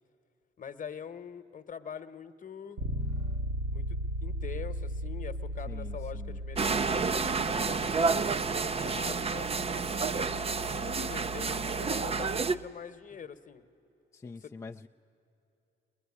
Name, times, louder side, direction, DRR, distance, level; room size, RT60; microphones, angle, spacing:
voice 1, 0.6-2.8 3.7-8.1 8.6-9.5 10.1-13.6 14.2-14.5, left 7 dB, 40° left, 10 dB, 1.1 m, -44 dB
Bass guitar, 2.8-12.6, equal, 70° right, 1.6 m, -38 dB
voice 2, 5.7-6.4 14.1-14.9, left 4 dB, 15° left, 1 dB, 0.5 m, -45 dB
sound 1, 6.6-12.5, right 4 dB, 30° right, 0.6 m, -30 dB
22.0 x 20.5 x 9.7 m, 2.8 s
cardioid pair, 90°, 20 cm